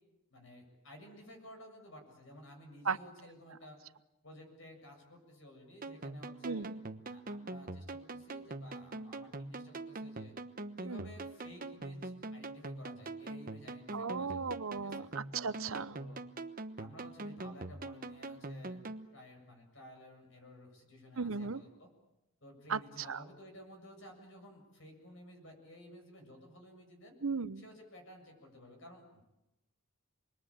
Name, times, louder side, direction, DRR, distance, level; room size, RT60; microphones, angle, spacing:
voice 1, 0.3-3.8 4.2-6.7 7.0-10.4 10.8-14.4 14.7-15.1 15.9-16.2 16.8-18.8 19.1-21.9 22.4-27.2 27.6-29.2, left 1 dB, 60° left, 3 dB, 7.4 m, -54 dB
sound 1, 5.8-19.1, right 2 dB, 40° right, 1.1 m, -44 dB
voice 2, 6.4-6.8 10.9-11.1 13.9-16.0 21.2-21.6 22.7-23.2 27.2-27.6, right 5 dB, 75° right, 14 dB, 0.9 m, -36 dB
28.5 x 21.5 x 8.8 m, 0.98 s
head